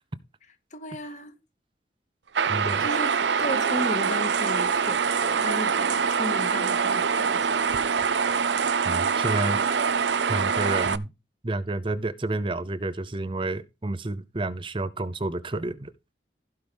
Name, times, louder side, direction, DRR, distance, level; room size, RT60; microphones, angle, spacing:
voice 1, 0.7-1.4 2.8-3.1 3.4-7.6, left 1 dB, 45° left, 1.8 m, -34 dB
sound 1, 2.3-11.0, right 6 dB, 90° right, 0.7 m, -24 dB
voice 2, 2.5-2.9 8.8-9.6 10.3-11.1 11.4-15.9, right 2 dB, 30° right, 0.6 m, -30 dB
15.5 x 5.7 x 3.5 m
head